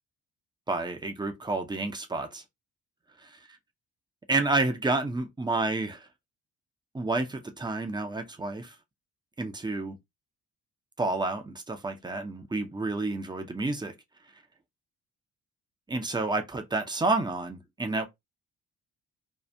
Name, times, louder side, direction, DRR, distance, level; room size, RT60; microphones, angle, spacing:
voice 1, 0.7-2.4 3.2-3.4 4.3-6.1 6.9-8.7 9.4-10.0 11.0-13.9 15.9-18.1, right 2 dB, 10° right, 0.5 m, -30 dB
2.7 x 2.4 x 3.3 m
figure-of-eight pair, 40°, 48 cm